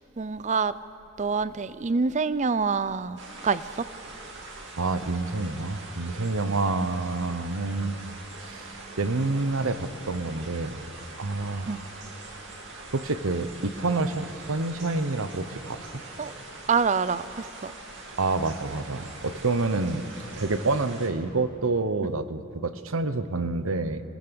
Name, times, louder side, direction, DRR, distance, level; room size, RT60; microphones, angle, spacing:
voice 1, 0.2-0.7 1.2-3.8 6.4-6.6 11.7-11.8 16.2-16.3 16.7-17.7 22.0-22.1, right 5 dB, 35° right, 0.5 m, -26 dB
sound 1, 3.2-21.1, right 2 dB, 60° right, 2.9 m, -43 dB
voice 2, 4.8-8.0 8.4-10.8 11.2-11.7 12.9-15.8 18.2-20.0 20.4-24.0, right 3 dB, 80° right, 1.0 m, -28 dB
27.0 x 18.0 x 7.0 m
head